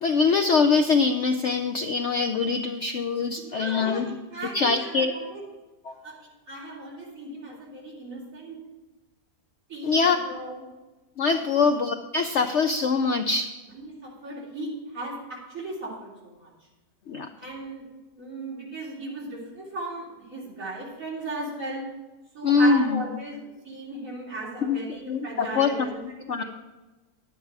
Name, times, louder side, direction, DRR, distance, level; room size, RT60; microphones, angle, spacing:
voice 1, 0.0-4.2 4.5-5.1 5.8-6.0 9.8-10.2 11.2-13.5 17.1-17.3 22.4-23.0 24.6-24.8 25.0-26.4, left 4 dB, 70° left, 7 dB, 0.6 m, -23 dB
voice 2, 3.5-5.4 6.0-6.1 6.5-8.6 9.7-10.6 11.5-11.7 13.7-16.1 16.4-16.5 17.4-17.8 18.1-21.8 22.3-23.4 23.6-25.9 26.4-26.5, right 2 dB, 50° right, -5 dB, 3.7 m, -36 dB
11.0 x 8.9 x 4.7 m, 1.1 s
omnidirectional pair, 1.8 m